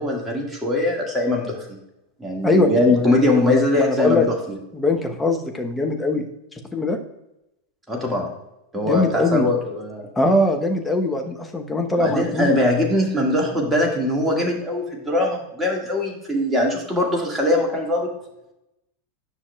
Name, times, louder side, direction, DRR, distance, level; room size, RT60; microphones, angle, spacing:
voice 1, 0.0-1.8 2.2-4.6 7.9-8.3 8.7-10.1 12.0-18.1, left 1 dB, 10° right, -1 dB, 1.8 m, -21 dB
voice 2, 2.4-3.1 3.4-4.2 4.7-6.2 6.5-7.0 8.8-9.5 10.2-12.5, left 2 dB, 10° left, 3 dB, 0.9 m, -21 dB
9.8 x 5.9 x 2.3 m, 0.89 s
figure-of-eight pair, 85°, 0 cm